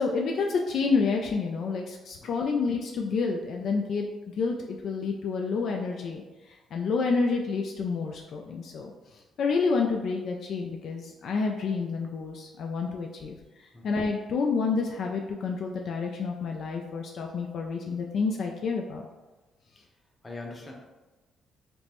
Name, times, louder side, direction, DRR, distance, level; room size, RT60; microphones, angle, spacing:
voice 1, 0.0-6.2 6.7-8.9 9.4-13.4 13.8-19.1, left 4 dB, 65° left, 1 dB, 0.3 m, -29 dB
voice 2, 20.2-20.7, left 3 dB, 20° left, -1 dB, 0.8 m, -42 dB
5.0 x 2.0 x 2.9 m, 1.2 s
cardioid pair, 90°, 0 cm